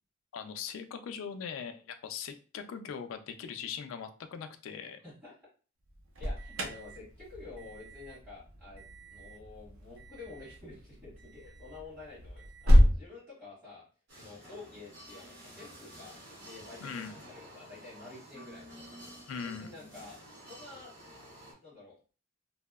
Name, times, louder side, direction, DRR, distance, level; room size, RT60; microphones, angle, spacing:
voice 1, 0.3-5.0 16.8-17.1 19.3-19.7, left 7 dB, 80° left, 8 dB, 0.3 m, -40 dB
voice 2, 5.0-5.3 6.2-13.8 14.2-18.6 19.4-20.9 21.6-21.9, left 3 dB, 20° right, -11 dB, 1.5 m, -49 dB
Alarm, 5.9-13.0, equal, 90° right, 0.6 m, -29 dB
sound 1, 14.1-21.5, equal, 60° right, 1.3 m, -51 dB
2.7 x 2.0 x 2.2 m, 0.36 s
head